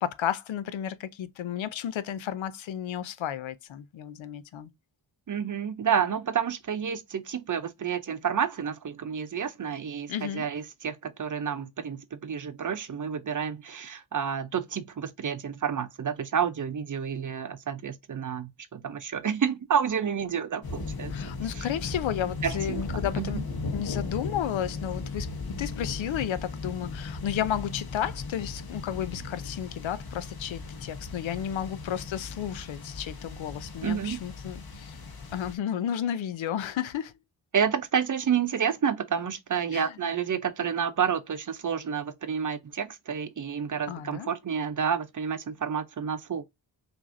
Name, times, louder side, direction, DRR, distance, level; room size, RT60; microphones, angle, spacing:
voice 1, 0.0-4.7 10.1-10.4 21.1-23.4 23.7-25.3 25.6-35.0 35.3-37.1 39.7-40.0 43.9-44.3, left 10 dB, 85° left, 0.6 m, -32 dB
voice 2, 5.3-21.1 21.6-21.7 22.4-22.8 23.2-23.3 33.8-34.2 37.5-46.4, right 7 dB, 45° right, 0.6 m, -29 dB
sound 1, 20.6-35.6, left 3 dB, 55° left, 1.2 m, -37 dB
5.9 x 2.6 x 2.6 m
wide cardioid pair, 105°, 45 cm